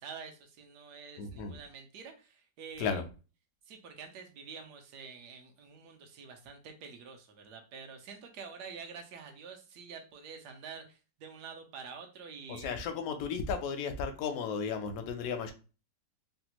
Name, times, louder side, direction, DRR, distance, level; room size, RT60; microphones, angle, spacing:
voice 1, 0.0-3.0 3.7-12.7, right 5 dB, 70° right, 1.1 m, -47 dB
voice 2, 1.2-1.5 2.8-3.0 12.5-15.5, left 6 dB, 70° left, 0.8 m, -34 dB
3.3 x 2.2 x 2.9 m
omnidirectional pair, 1.9 m